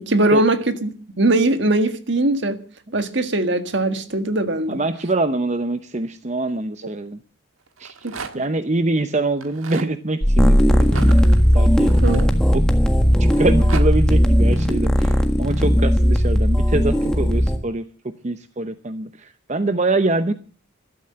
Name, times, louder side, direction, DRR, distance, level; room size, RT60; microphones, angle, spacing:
voice 1, 0.0-2.6 2.9-4.8 8.0-8.1 12.0-12.3, right 2 dB, 60° right, 9 dB, 1.7 m, -20 dB
voice 2, 4.7-7.2 7.8-8.0 8.3-11.0 11.5-11.9 12.5-12.6 13.2-17.8 18.2-20.3, right 2 dB, 35° right, 10 dB, 0.8 m, -24 dB
Rattle, 7.7-8.6 9.3-9.9 10.8-12.8 13.3-13.9, right 5 dB, 80° right, 1.6 m, -35 dB
sound 1, 10.2-17.6, equal, 5° left, 1.5 m, -16 dB
14.5 x 12.5 x 7.7 m, 0.41 s
head